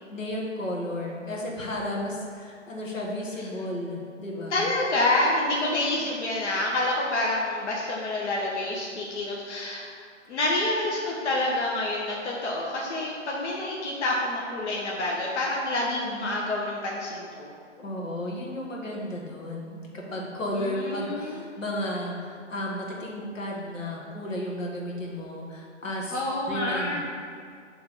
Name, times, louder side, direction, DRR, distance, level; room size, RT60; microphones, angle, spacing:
voice 1, 0.1-4.7 5.5-6.1 15.8-16.3 17.8-26.2 26.5-27.0, left 1 dB, 85° left, -2 dB, 1.7 m, -33 dB
voice 2, 4.5-9.9 10.3-17.5 20.5-21.4 26.1-27.0, left 2 dB, 60° left, -3 dB, 1.2 m, -28 dB
7.6 x 3.5 x 5.5 m, 2.2 s
hypercardioid pair, 150°, 38 cm